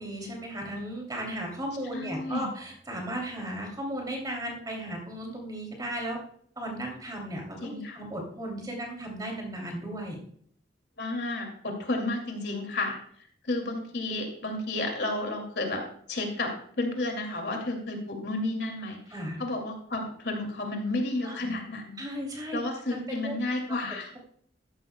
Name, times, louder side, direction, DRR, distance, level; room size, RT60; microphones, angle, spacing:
voice 1, 0.0-6.2 6.6-10.2 19.1-19.4 21.2-21.5 22.0-22.6 22.9-23.4 23.7-23.8, right 1 dB, 20° right, 0 dB, 2.7 m, -35 dB
voice 2, 1.9-2.5 7.6-8.0 11.0-13.0 13.4-15.8 16.1-16.5 16.8-19.0 19.4-22.0 22.5-24.1, left 2 dB, 60° left, 2 dB, 2.3 m, -31 dB
14.0 x 11.5 x 2.2 m, 0.63 s
head